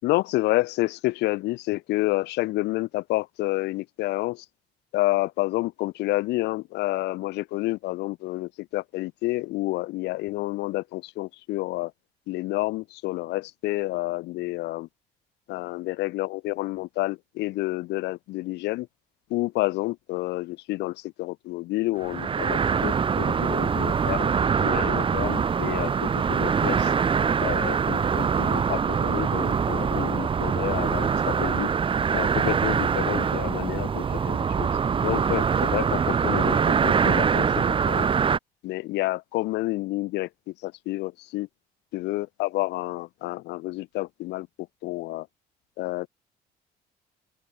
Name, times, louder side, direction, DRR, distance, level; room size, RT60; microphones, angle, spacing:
voice 1, 0.0-4.5 4.9-11.9 12.3-14.9 15.5-18.9 19.3-24.3 24.6-26.9 27.4-31.7 32.1-34.7 35.0-38.1 38.6-40.3 40.6-41.5 41.9-44.5 44.8-45.3 45.8-46.1, left 19 dB, 85° left, 5.3 m, -29 dB
sound 1, 22.0-38.4, right 6 dB, 30° right, 1.0 m, -24 dB
open air
cardioid pair, 110°, 17 cm